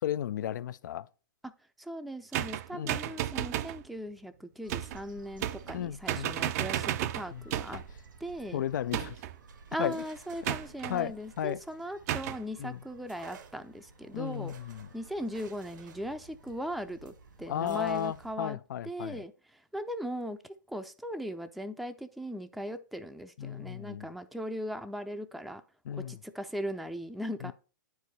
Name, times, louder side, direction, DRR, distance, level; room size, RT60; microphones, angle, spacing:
voice 1, 0.0-1.1 2.7-3.0 5.7-6.3 7.3-7.5 7.7-7.8 8.5-9.2 9.8-10.0 10.5-10.6 10.9-11.6 12.6-12.8 14.1-14.9 17.5-19.2 23.4-24.1 25.9-26.2 27.4-27.5, left 10 dB, 70° left, 0.4 m, -34 dB
voice 2, 1.8-7.8 8.2-8.6 9.7-14.5 14.9-17.1 17.4-18.6 18.8-25.6 26.0-27.5, equal, ahead, 0.5 m, -39 dB
sound 1, 2.3-3.8 4.7-5.0 5.4-5.8 6.1-7.9 8.9-9.4 10.4-11.0 12.1-12.4, right 12 dB, 50° right, 0.5 m, -33 dB
sound 2, 4.6-18.3, right 4 dB, 85° right, 1.7 m, -54 dB
sound 3, 9.4-12.4 13.0-17.2 17.6-18.4, right 8 dB, 70° right, 0.9 m, -56 dB
9.6 x 4.7 x 4.1 m
hypercardioid pair, 115°, 10 cm